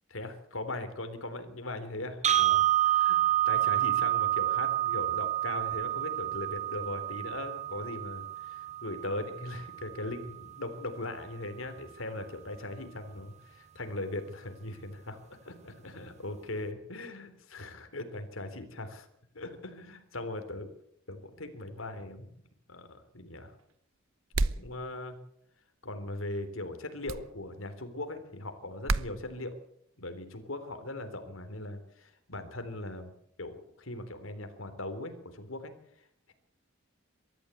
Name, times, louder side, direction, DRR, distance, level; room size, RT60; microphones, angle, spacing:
voice 1, 0.1-19.1 19.3-20.7 21.1-22.3 22.7-23.5 24.4-25.2 25.8-29.6 30.0-33.1 33.4-35.7, left 2 dB, 80° left, 8 dB, 3.6 m, -39 dB
sound 1, 2.2-10.3, right 13 dB, 35° right, 0.8 m, -29 dB
sound 2, 24.3-24.7 27.1-27.3 28.9-29.1, right 3 dB, 90° right, 0.9 m, -28 dB
23.0 x 13.5 x 8.4 m, 0.72 s
head